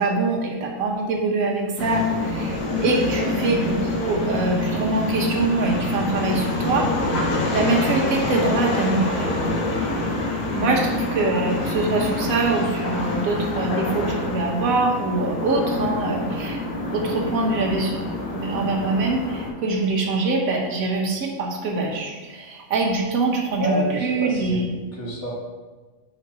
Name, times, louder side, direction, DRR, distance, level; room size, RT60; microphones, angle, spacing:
voice 1, 0.0-6.9 7.5-9.3 10.5-16.6 16.9-18.0 18.3-24.8, right 3 dB, 90° right, 0 dB, 1.4 m, -24 dB
sound 1, 1.8-19.5, left 2 dB, 80° left, 1.4 m, -26 dB
voice 2, 23.6-24.6 24.9-25.3, right 1 dB, 55° left, -5 dB, 1.9 m, -27 dB
5.0 x 4.1 x 5.5 m, 1.3 s
omnidirectional pair, 1.4 m